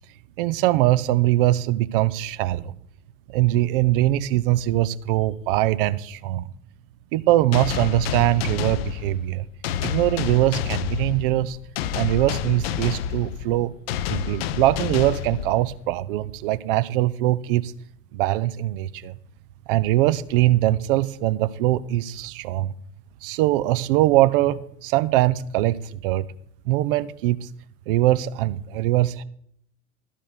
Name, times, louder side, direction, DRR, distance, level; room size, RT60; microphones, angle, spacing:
voice 1, 0.4-2.7 3.3-6.5 7.1-9.5 9.8-11.6 11.9-13.7 14.1-17.7 18.1-19.1 19.7-22.7 23.2-26.2 26.7-27.5 27.9-29.2, right 15 dB, 50° right, 17 dB, 0.6 m, -22 dB
sound 1, 7.5-16.0, left 10 dB, 55° left, 0.6 m, -29 dB
12.5 x 5.1 x 6.6 m, 0.68 s
figure-of-eight pair, 80°, 37 cm